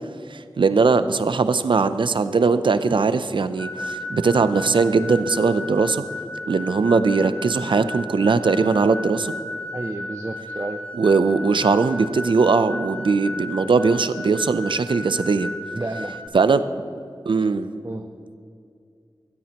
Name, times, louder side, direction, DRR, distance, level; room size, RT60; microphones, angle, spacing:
voice 1, 0.3-6.0 6.5-9.3 10.9-15.5 16.3-16.6 17.3-17.7, right 4 dB, 85° right, 12 dB, 0.5 m, -20 dB
sound 1, 3.6-16.3, left 1 dB, 15° left, 0.9 m, -34 dB
voice 2, 9.7-10.8 15.7-16.2 17.8-18.1, right 2 dB, 35° right, 6 dB, 0.7 m, -31 dB
17.0 x 13.5 x 3.0 m, 2.4 s
cardioid pair, 40°, 8 cm